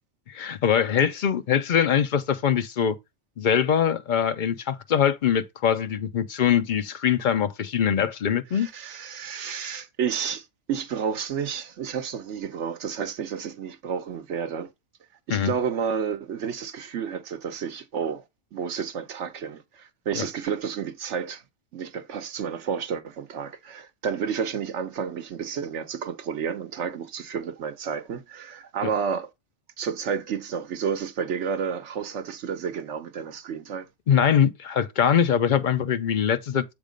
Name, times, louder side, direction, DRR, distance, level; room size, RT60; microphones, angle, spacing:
voice 1, 0.3-3.0 3.4-8.7 15.3-15.5 20.1-20.2 28.8-28.9 34.1-36.6, left 8 dB, 50° left, 0.6 m, -23 dB
voice 2, 8.5-14.7 15.3-18.2 18.5-21.4 21.7-29.3 29.8-33.9, right 7 dB, 75° right, 1.2 m, -31 dB
7.3 x 3.6 x 5.1 m
omnidirectional pair, 1.2 m